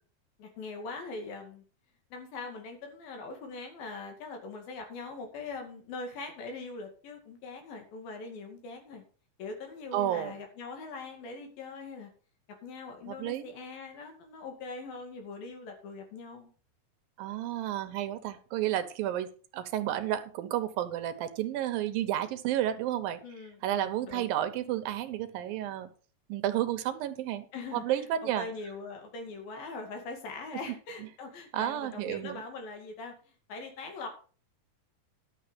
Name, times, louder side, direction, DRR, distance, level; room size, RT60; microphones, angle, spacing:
voice 1, 0.4-1.6 2.1-9.0 9.4-12.1 12.6-16.5 23.2-24.3 27.5-33.1 33.5-34.1, left 3 dB, 85° left, 4 dB, 4.0 m, -42 dB
voice 2, 9.9-10.3 13.1-13.5 17.2-23.2 23.6-25.9 26.3-27.5 27.7-28.5 31.5-32.4, right 12 dB, 80° right, 10 dB, 2.7 m, -31 dB
11.5 x 6.7 x 5.1 m, 0.39 s
omnidirectional pair, 4.1 m